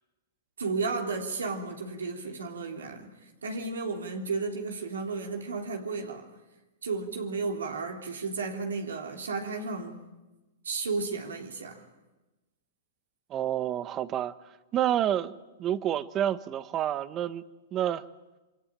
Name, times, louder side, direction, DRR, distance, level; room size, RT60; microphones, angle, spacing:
voice 1, 0.6-6.3 6.8-10.0 10.6-11.8, right 4 dB, 90° right, 3.4 m, -33 dB
voice 2, 13.3-14.4 14.7-17.4 17.7-18.1, right 11 dB, 30° right, 1.2 m, -29 dB
27.5 x 24.0 x 8.9 m
hypercardioid pair, 120°, 0 cm